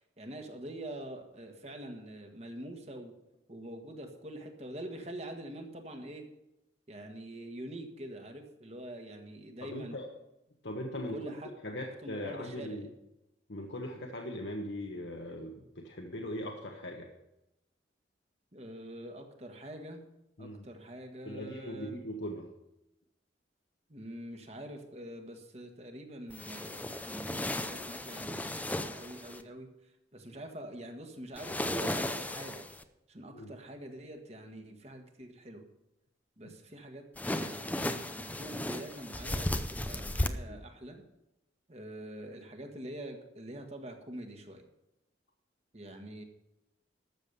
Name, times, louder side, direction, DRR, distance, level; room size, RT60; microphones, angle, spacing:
voice 1, 0.2-3.1 3.5-6.2 6.9-10.0 11.1-11.5 12.0-12.9 18.5-20.0 20.4-22.0 23.9-29.7 30.1-32.7 33.1-35.6 36.4-41.0 41.7-44.7 45.7-46.2, right 1 dB, 35° right, 4 dB, 1.7 m, -45 dB
voice 2, 9.6-10.1 10.6-11.3 11.6-12.9 13.5-17.1 20.4-20.7 21.2-22.5 33.3-33.5 36.4-36.5 40.5-40.6, left 1 dB, 70° left, 1 dB, 1.3 m, -40 dB
sound 1, 26.3-29.4 31.4-32.8 37.2-40.3, left 1 dB, 10° left, 0.6 m, -35 dB
13.0 x 7.3 x 6.9 m, 0.90 s
head